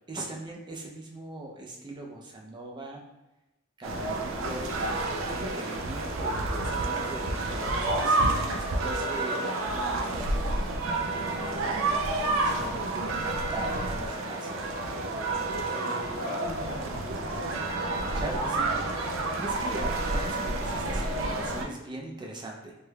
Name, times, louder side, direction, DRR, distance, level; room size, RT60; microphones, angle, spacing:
voice 1, 0.1-3.0 3.8-4.8 5.3-10.3 10.8-11.8 12.4-14.5 18.2-22.8, right 2 dB, 25° right, 0 dB, 0.5 m, -41 dB
sound 1, 3.8-21.7, right 2 dB, 85° right, 0.4 m, -29 dB
voice 2, 12.5-12.8 15.5-17.6 19.6-19.7, left 2 dB, 45° left, -6 dB, 0.5 m, -43 dB
3.2 x 3.1 x 2.2 m, 0.98 s
head